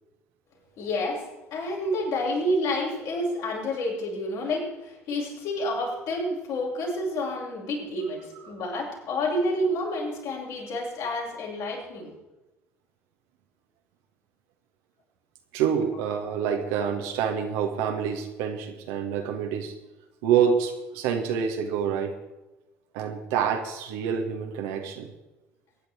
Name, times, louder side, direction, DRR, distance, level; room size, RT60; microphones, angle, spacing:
voice 1, 0.8-12.1, left 1 dB, 60° left, -3 dB, 6.7 m, -29 dB
voice 2, 15.5-19.7 20.2-22.1 22.9-25.1, right 7 dB, 65° right, 4 dB, 2.0 m, -27 dB
23.0 x 10.5 x 4.6 m, 1.0 s
figure-of-eight pair, 55°, 7 cm